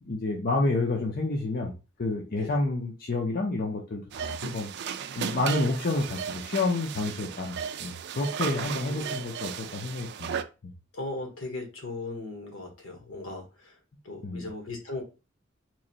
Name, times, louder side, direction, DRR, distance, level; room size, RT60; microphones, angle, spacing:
voice 1, 0.0-1.7 2.0-4.7 5.2-10.4 14.2-14.4, left 2 dB, 45° left, -1 dB, 0.6 m, -29 dB
sound 1, 4.1-10.4, right 8 dB, 55° right, 0.3 m, -35 dB
voice 2, 8.5-9.2 10.9-13.8 14.0-15.0, left 2 dB, 70° left, 3 dB, 1.1 m, -38 dB
3.1 x 2.6 x 3.9 m, 0.30 s
head